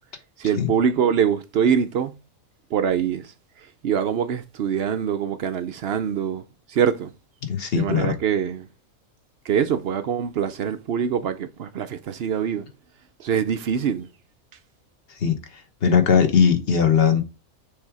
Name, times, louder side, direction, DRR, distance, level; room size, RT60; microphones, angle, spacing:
voice 1, 0.4-2.1 2.7-3.3 3.8-6.4 6.7-7.1 7.7-8.7 9.4-12.7 13.2-14.1, right 7 dB, 60° right, 0.6 m, -24 dB
voice 2, 7.4-8.1 15.2-15.4 15.8-17.2, left 7 dB, 45° left, 1.2 m, -19 dB
6.5 x 3.3 x 4.7 m
omnidirectional pair, 1.5 m